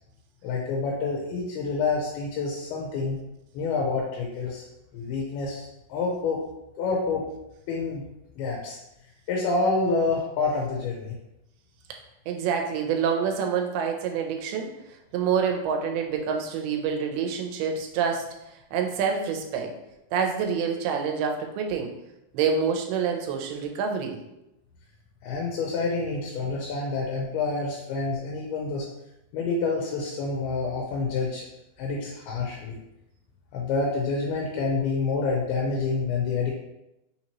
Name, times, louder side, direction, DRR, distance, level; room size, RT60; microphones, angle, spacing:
voice 1, 0.4-3.2 3.5-4.6 4.9-6.5 6.8-7.3 7.7-8.1 8.4-8.8 9.3-11.1 25.2-28.9 29.3-31.5 31.8-32.8 33.5-36.5, left 4 dB, 90° left, -2 dB, 2.6 m, -28 dB
voice 2, 12.3-14.7 15.1-18.2 18.7-19.7 20.1-21.9 22.3-24.2, right 6 dB, 85° right, 3 dB, 2.6 m, -27 dB
5.9 x 2.8 x 2.9 m, 0.88 s
omnidirectional pair, 4.4 m